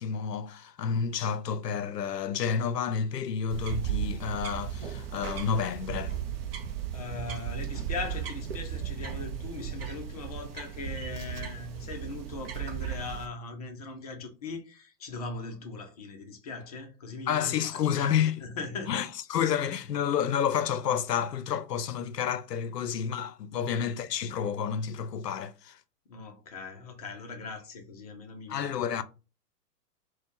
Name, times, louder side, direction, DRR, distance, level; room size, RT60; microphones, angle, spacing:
voice 1, 0.0-6.1 17.3-18.3 18.9-25.8 28.5-29.0, left 7 dB, 80° left, 0.6 m, -30 dB
sound 1, 3.5-13.3, right 9 dB, 40° right, 0.5 m, -36 dB
voice 2, 6.9-18.1 18.4-19.1 23.5-23.9 26.1-29.0, left 3 dB, 25° left, 0.4 m, -40 dB
4.1 x 2.2 x 2.9 m
figure-of-eight pair, 110°, 48 cm